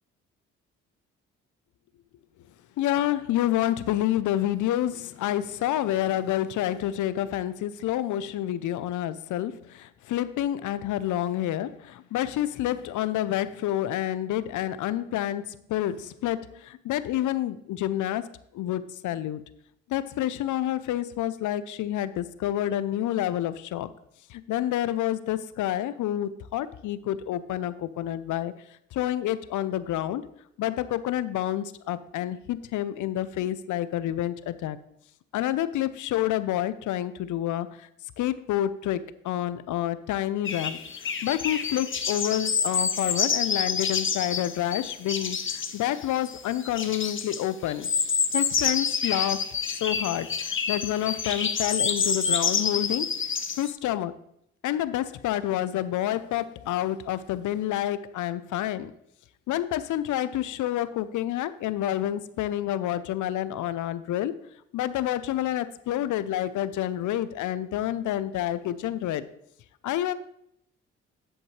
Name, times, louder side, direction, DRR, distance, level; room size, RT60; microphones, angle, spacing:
voice 1, 2.8-18.3 18.5-19.4 19.9-23.9 24.3-28.5 28.9-30.2 30.6-34.8 35.3-37.9 38.2-47.9 48.3-49.4 49.8-53.1 53.6-54.1 54.6-58.9 59.5-64.3 64.7-69.2 69.8-70.1, left 12 dB, 65° left, 15 dB, 0.7 m, -28 dB
sound 1, 40.4-53.7, left 6 dB, 40° left, 0.9 m, -28 dB
11.0 x 7.9 x 3.2 m, 0.74 s
hypercardioid pair, 45°, 32 cm